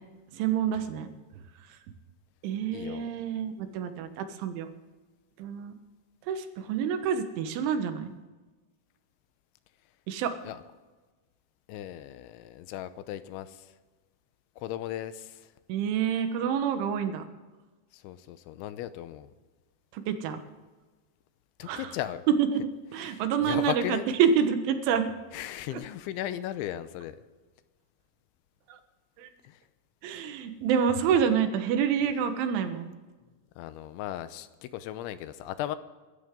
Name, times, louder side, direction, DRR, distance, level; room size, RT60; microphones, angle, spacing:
voice 1, 0.3-1.1 2.4-4.7 5.4-5.8 6.3-8.1 10.1-10.3 15.7-17.3 19.9-20.4 21.7-21.9 22.4-25.1 25.7-25.8 28.7-28.8 29.2-29.3 30.0-32.9, right 7 dB, 85° right, 8 dB, 3.7 m, -28 dB
voice 2, 2.7-3.1 10.4-10.6 11.7-13.7 14.6-15.5 17.9-19.3 21.6-22.2 23.0-24.1 25.3-27.2 29.4-29.6 33.6-35.8, left 12 dB, 85° left, 12 dB, 3.1 m, -36 dB
24.5 x 13.5 x 3.8 m, 1.3 s
omnidirectional pair, 5.3 m